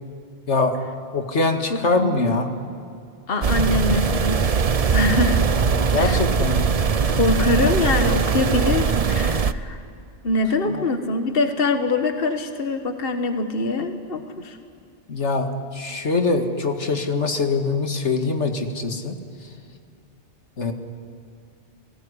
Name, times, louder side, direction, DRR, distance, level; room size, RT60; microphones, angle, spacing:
voice 1, 0.5-0.8 1.1-2.5 5.9-6.7 15.1-19.1 20.6-20.7, left 3 dB, 85° left, 5 dB, 2.2 m, -23 dB
voice 2, 1.7-2.3 3.3-4.4 4.9-5.4 5.9-6.2 7.1-9.8 10.2-14.6, left 2 dB, 55° left, 6 dB, 1.6 m, -23 dB
sound 1, 3.4-9.5, right 5 dB, 40° right, 0.7 m, -21 dB
29.5 x 19.0 x 9.8 m, 2.4 s
omnidirectional pair, 1.2 m